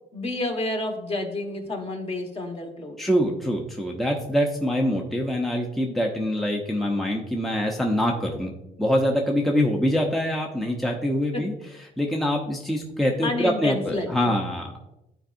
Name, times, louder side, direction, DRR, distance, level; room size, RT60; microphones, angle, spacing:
voice 1, 0.1-3.0 11.3-11.4 13.2-14.3, left 2 dB, 35° left, 3 dB, 1.4 m, -29 dB
voice 2, 3.0-8.5 8.8-14.8, equal, ahead, 0 dB, 0.7 m, -25 dB
11.5 x 4.6 x 2.6 m, 0.90 s
cardioid pair, 110°, 17 cm